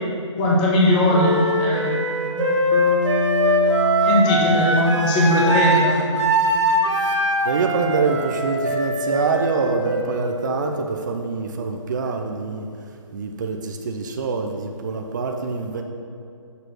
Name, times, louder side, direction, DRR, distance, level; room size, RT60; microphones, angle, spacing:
voice 1, 0.4-1.9 2.3-2.4 4.0-5.9, left 1 dB, 20° left, -4 dB, 1.1 m, -19 dB
Wind instrument woodwind instrument, 1.1-10.9, equal, 65° right, 1.5 m, -22 dB
Bass guitar, 2.7-6.8, left 2 dB, 45° left, 0.9 m, -28 dB
voice 2, 6.9-12.7 13.1-15.8, right 4 dB, 35° right, 3 dB, 0.5 m, -25 dB
6.8 x 4.7 x 5.9 m, 2.4 s
hypercardioid pair, 160°, 16 cm